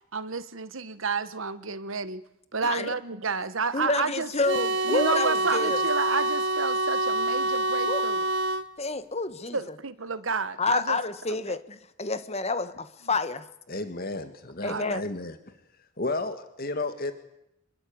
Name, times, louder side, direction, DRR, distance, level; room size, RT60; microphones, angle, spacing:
voice 1, 0.1-2.2 2.5-4.3 4.9-8.2 9.5-11.0 11.5-11.6 14.6-15.0, right 4 dB, 90° right, 1.5 m, -31 dB
voice 2, 2.6-2.9 3.7-5.8 7.8-8.1 8.8-9.7 10.6-13.4 14.6-15.0, left 3 dB, 30° left, 1.5 m, -29 dB
sound 1, 4.5-8.7, right 1 dB, 75° right, 1.6 m, -26 dB
voice 3, 13.7-15.6 16.0-17.1, left 2 dB, 50° left, 1.8 m, -33 dB
27.0 x 22.0 x 8.8 m
head